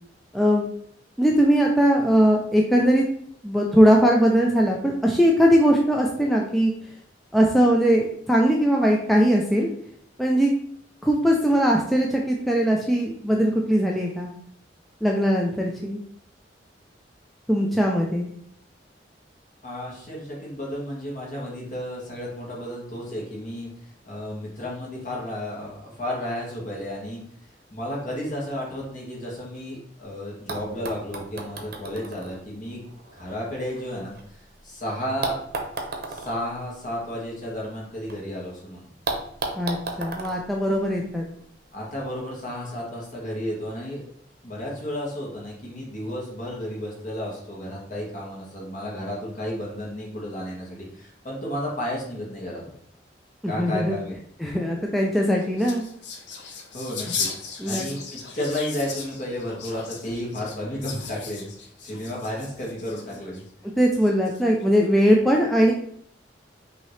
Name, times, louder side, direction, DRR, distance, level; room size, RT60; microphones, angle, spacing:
voice 1, 0.3-0.7 1.2-3.0 3.4-6.7 7.3-9.7 10.2-10.5 11.0-14.3 15.0-16.0 17.5-18.3 39.6-41.2 53.4-53.9 54.4-55.8 57.6-57.9 63.8-65.7, equal, ahead, -2 dB, 0.4 m, -20 dB
voice 2, 19.6-23.7 24.1-27.2 27.7-32.9 33.1-35.4 36.1-38.9 41.7-44.0 44.4-52.7 53.5-54.2 56.7-57.3 57.6-63.4, left 1 dB, 45° left, -3 dB, 1.6 m, -32 dB
sound 1, 30.0-30.1 30.5-34.6 35.2-38.2 38.5-38.6 39.1-41.4 42.4-42.5, right 3 dB, 55° right, 0.8 m, -35 dB
sound 2, 55.0-63.4 64.0-64.6, left 5 dB, 75° left, 0.7 m, -36 dB
5.7 x 2.8 x 3.2 m, 0.66 s
head